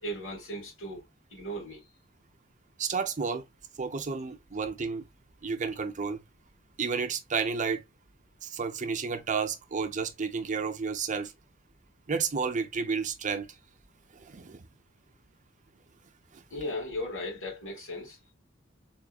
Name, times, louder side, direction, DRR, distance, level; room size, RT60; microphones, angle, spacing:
voice 1, 0.0-1.0 1.3-1.8 16.5-18.2, equal, 65° left, 2.6 m, -36 dB
voice 2, 2.8-3.4 3.8-5.0 5.4-6.2 6.8-7.8 8.6-11.3 12.1-13.5, right 5 dB, 40° right, 0.6 m, -31 dB
3.6 x 3.6 x 2.3 m
head